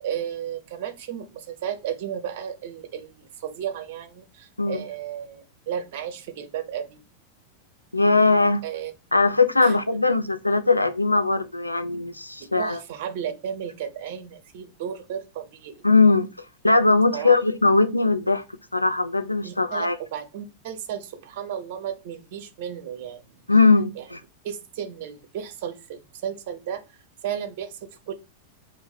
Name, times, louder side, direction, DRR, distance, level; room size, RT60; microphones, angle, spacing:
voice 1, 0.0-7.0 8.6-8.9 9.6-9.8 12.6-15.8 17.1-17.4 19.4-23.4 24.0-24.1 24.4-26.8 27.2-28.1, right 9 dB, 50° right, 0.6 m, -34 dB
voice 2, 7.9-8.6 9.1-12.8 15.8-16.3 16.6-18.4 18.7-20.0 23.5-24.2, left 3 dB, 85° left, 0.4 m, -20 dB
3.7 x 2.1 x 4.1 m
figure-of-eight pair, 90°, 0 cm